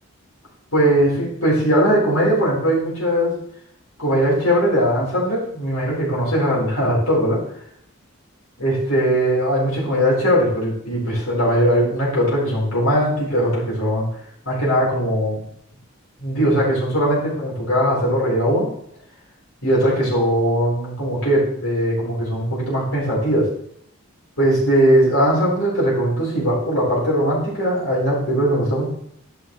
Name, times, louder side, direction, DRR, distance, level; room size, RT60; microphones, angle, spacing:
voice 1, 0.7-3.4 4.0-7.4 8.6-14.1 14.5-15.4 16.2-18.7 19.6-23.5 24.4-28.9, equal, 80° left, -5 dB, 3.9 m, -19 dB
11.5 x 5.8 x 3.1 m, 0.70 s
head